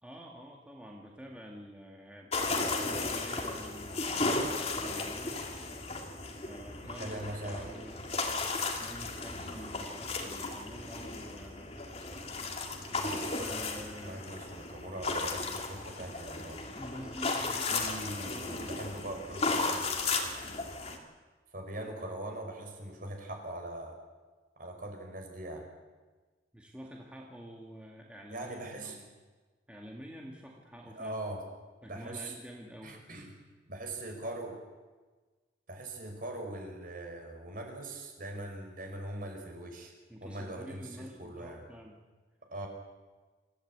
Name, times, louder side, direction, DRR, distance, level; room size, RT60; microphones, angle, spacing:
voice 1, 0.0-5.5 6.5-8.0 8.8-11.8 13.3-14.2 16.7-17.9 18.2-19.0 26.5-29.1 29.7-31.2 31.8-33.0 40.1-42.0, equal, 5° right, -1 dB, 2.1 m, -48 dB
sound 1, 2.3-21.0, left 3 dB, 30° left, 2.5 m, -35 dB
voice 2, 6.8-7.7 8.3-8.4 9.3-9.6 12.9-13.4 14.0-16.6 17.7-20.3 21.5-24.0 24.6-25.7 28.3-29.0 31.0-31.4 31.9-32.4 32.8-33.3 33.7-34.6 35.7-39.9 40.2-41.6 42.5-42.7, right 1 dB, 45° right, 3 dB, 5.0 m, -41 dB
26.0 x 15.0 x 8.8 m, 1.3 s
head